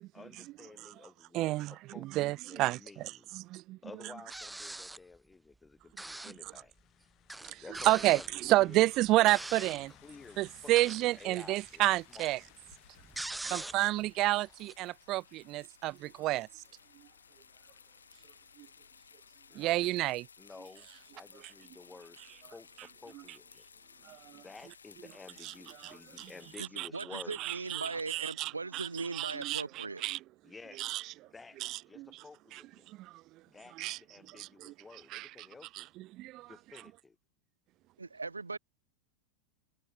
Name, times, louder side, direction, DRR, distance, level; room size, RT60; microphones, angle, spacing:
voice 1, 0.1-3.3 3.8-6.7 7.6-8.9 9.9-11.8 12.1-12.3 13.4-13.7 19.5-19.9 20.4-20.9 21.1-22.2 22.5-23.7 24.3-27.4 30.4-30.9 31.2-31.6 31.9-32.9 33.5-35.9 36.5-37.2, left 4 dB, 10° left, 0.9 m, -52 dB
voice 2, 1.3-1.7 2.0-2.8 3.3-3.8 7.5-7.6 7.9-9.9 10.4-12.4 13.5-16.5 19.6-20.2 24.1-24.4 25.8-26.3 26.8-26.9 27.4-28.9 29.1-30.2 30.8-31.0 31.6-32.1 33.0-33.1 33.8-34.0 34.4-34.7 35.1-35.3 35.8-35.9 36.1-36.5, right 17 dB, 35° right, 0.4 m, -30 dB
sound 1, 4.3-5.2 6.0-6.5 6.8-6.9 7.3-9.9 10.6-11.2 11.5-14.0 14.3-14.7, right 2 dB, 5° right, 1.7 m, -43 dB
sound 2, 6.7-20.1, left 13 dB, 35° left, 5.0 m, -64 dB
sound 3, 8.7-26.6, left 5 dB, 75° left, 4.9 m, -59 dB
voice 3, 26.6-30.0 38.0-38.6, right 3 dB, 80° right, 1.4 m, -39 dB
figure-of-eight pair, 90°, 0 cm